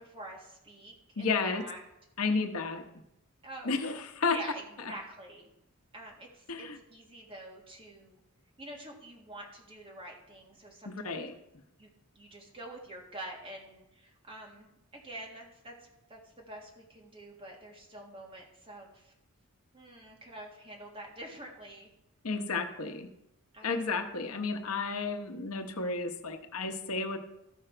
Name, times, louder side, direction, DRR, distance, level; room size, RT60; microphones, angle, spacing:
voice 1, 0.0-1.8 3.4-3.8 4.3-5.5 5.9-8.2 8.6-11.2 11.8-19.1 19.7-21.9 23.5-24.0, right 1 dB, 25° right, -1 dB, 1.8 m, -47 dB
voice 2, 1.2-1.6 2.2-2.8 3.6-4.4 4.8-4.9 6.5-6.8 10.9-11.3 22.2-23.1 23.6-27.2, left 4 dB, 80° left, 5 dB, 1.0 m, -32 dB
14.0 x 5.0 x 4.5 m, 0.88 s
head